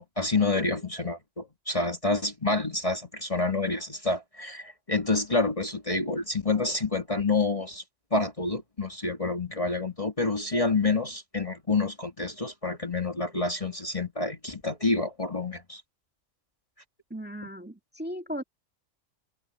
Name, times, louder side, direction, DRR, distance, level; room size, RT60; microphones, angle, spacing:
voice 1, 0.0-7.8 8.1-15.8, left 3 dB, 25° left, 2.1 m, -28 dB
voice 2, 17.1-18.4, equal, 5° right, 2.0 m, -36 dB
omnidirectional pair, 1.4 m